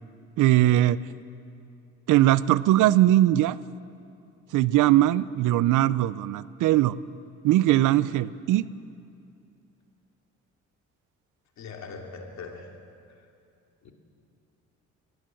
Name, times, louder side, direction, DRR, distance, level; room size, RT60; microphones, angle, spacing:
voice 1, 0.4-1.0 2.1-3.6 4.5-7.0 7.4-8.6, right 14 dB, 85° right, 18 dB, 0.6 m, -20 dB
voice 2, 11.6-12.8 13.8-13.9, left 4 dB, 65° left, 2 dB, 2.9 m, -41 dB
23.0 x 16.0 x 7.7 m, 2.5 s
cardioid pair, 90°, 30 cm